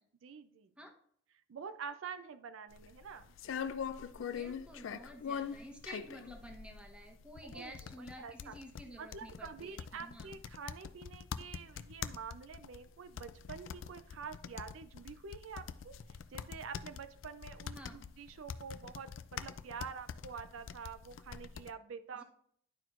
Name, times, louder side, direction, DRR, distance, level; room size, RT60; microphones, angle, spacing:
voice 1, 0.2-0.7 1.5-3.3 7.5-8.6 9.0-22.2, right 6 dB, 75° right, 11 dB, 0.4 m, -47 dB
sound 1, 2.7-21.7, left 7 dB, 70° left, 0.4 m, -44 dB
voice 2, 4.2-10.4 17.7-18.1 22.1-22.2, equal, 5° right, 2 dB, 0.9 m, -51 dB
11.0 x 4.5 x 2.4 m, 0.64 s
head